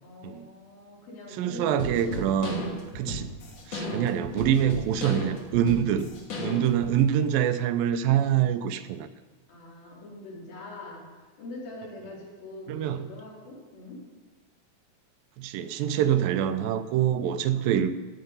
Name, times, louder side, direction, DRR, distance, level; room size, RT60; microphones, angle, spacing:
voice 1, 0.0-2.3 9.5-14.0 17.5-17.7, left 1 dB, 80° left, -5 dB, 5.0 m, -43 dB
voice 2, 1.3-3.3 3.7-6.1 6.4-9.1 12.7-13.1 15.4-17.9, right 10 dB, 80° right, 11 dB, 2.3 m, -25 dB
sound 1, 1.8-6.9, left 1 dB, 50° left, 2.6 m, -35 dB
15.0 x 8.6 x 5.4 m, 1.3 s
omnidirectional pair, 4.1 m